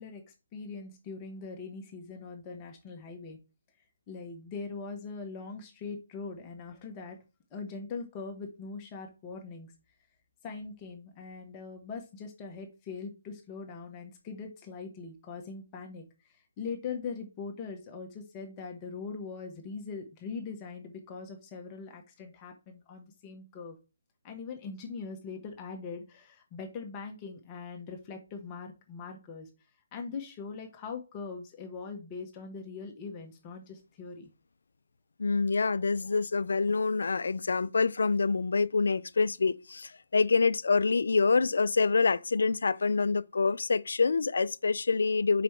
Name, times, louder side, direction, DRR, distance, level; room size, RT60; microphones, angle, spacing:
voice 1, 0.0-3.4 4.1-7.2 7.5-9.7 10.4-23.8 24.2-29.5 29.9-34.3, left 4 dB, 20° left, 1.3 m, -41 dB
voice 2, 35.2-45.4, left 4 dB, 75° left, 0.5 m, -26 dB
5.0 x 4.9 x 4.5 m
hypercardioid pair, 160°, 0 cm